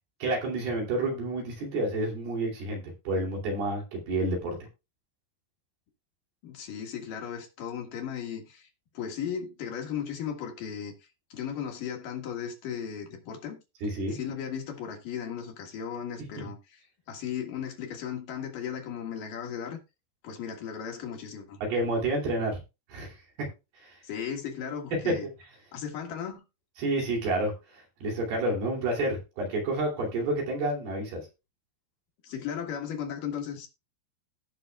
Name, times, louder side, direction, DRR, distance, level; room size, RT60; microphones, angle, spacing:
voice 1, 0.2-4.5 13.8-14.2 16.2-16.3 21.6-22.6 22.9-23.5 23.8-23.9 25.1-25.2 26.8-31.2, right 2 dB, 70° right, 4.5 m, -29 dB
voice 2, 6.4-8.7 8.9-10.9 11.3-13.6 14.1-19.8 20.2-21.6 24.0-25.3 25.7-26.4 32.2-33.7, left 8 dB, 60° left, 3.0 m, -36 dB
17.5 x 6.0 x 2.2 m
omnidirectional pair, 4.7 m